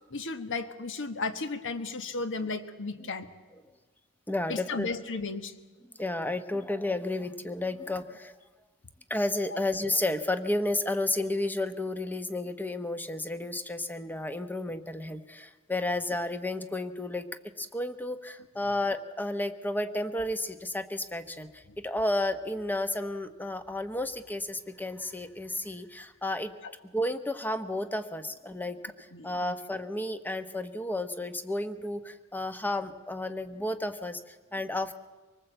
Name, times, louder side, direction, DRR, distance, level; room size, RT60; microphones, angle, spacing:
voice 1, 0.1-3.3 4.5-5.5 9.5-9.6 18.6-18.8 21.7-21.8 26.6-26.7 29.1-29.6, left 3 dB, 60° left, 9 dB, 1.5 m, -35 dB
voice 2, 4.3-4.9 6.0-8.3 9.1-17.3 17.6-26.5 26.9-34.9, left 1 dB, 10° left, 10 dB, 1.0 m, -32 dB
25.0 x 19.5 x 7.9 m, 1.3 s
head